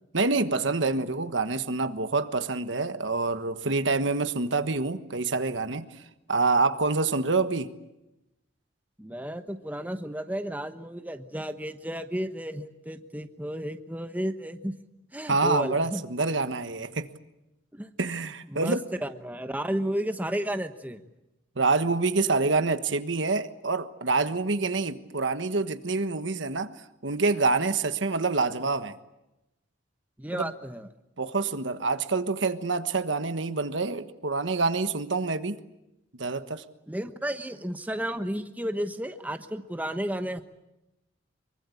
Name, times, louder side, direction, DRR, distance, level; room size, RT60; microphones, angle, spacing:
voice 1, 0.1-5.9 6.3-7.7 15.3-17.1 18.0-18.8 21.6-26.7 27.0-28.9 30.3-30.5 31.2-35.6 36.2-36.6, right 3 dB, 75° right, 1.3 m, -26 dB
voice 2, 9.0-14.7 15.1-16.0 17.7-17.9 18.5-21.0 30.2-30.9 36.9-40.4, equal, 10° right, 1.1 m, -32 dB
24.5 x 23.5 x 8.4 m
head